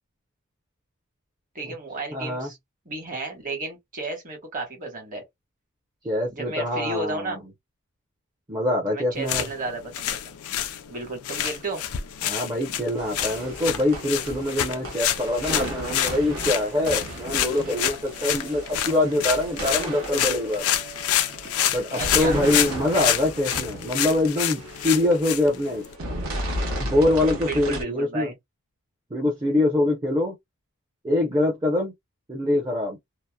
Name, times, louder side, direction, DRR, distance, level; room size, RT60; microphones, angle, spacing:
voice 1, 1.5-2.6 2.8-5.2 6.3-7.4 8.9-10.3 10.9-11.8 21.9-22.4 27.4-28.4, right 2 dB, 35° right, 1.3 m, -33 dB
voice 2, 2.1-2.5 6.0-7.4 8.5-9.5 12.2-20.6 21.7-25.8 26.7-28.3 29.1-30.4 31.0-31.9 32.3-33.0, left 1 dB, 20° right, 0.7 m, -24 dB
sound 1, 9.2-25.9, left 11 dB, 70° left, 0.4 m, -28 dB
sound 2, 13.0-27.8, right 1 dB, 65° right, 0.9 m, -35 dB
2.8 x 2.1 x 2.2 m
head